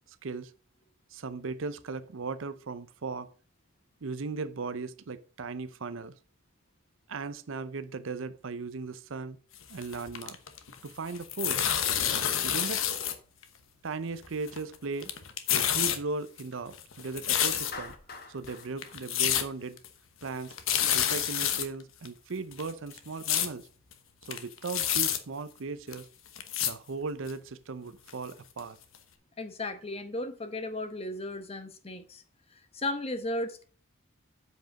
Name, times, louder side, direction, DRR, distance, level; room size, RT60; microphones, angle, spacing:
voice 1, 1.1-3.3 4.0-6.1 7.1-9.4 9.7-10.4 10.8-11.6 12.4-12.8 13.8-15.1 15.5-18.0 18.3-19.8 20.2-20.6 20.9-23.7 24.2-26.1 26.6-28.8, right 4 dB, 65° right, 0.6 m, -37 dB
sound 1, 9.6-10.8 11.1-13.1 13.4-13.5 14.2-14.8 15.0-16.0 16.4-17.9 18.4-18.5 18.8-19.5 19.8-19.9 20.2-20.3 20.5-21.7 22.1-22.2 22.5-23.5 23.9-24.0 24.2-25.2 25.9-26.0 26.4-26.7 27.3-27.4 28.1-28.2 28.6-28.7 28.9-29.0, left 9 dB, 70° left, 1.0 m, -28 dB
Clapping, 17.7-20.0, left 4 dB, 45° left, 1.7 m, -46 dB
voice 2, 29.4-32.2 32.5-33.6, left 2 dB, 25° left, 1.0 m, -35 dB
8.0 x 5.1 x 5.1 m
head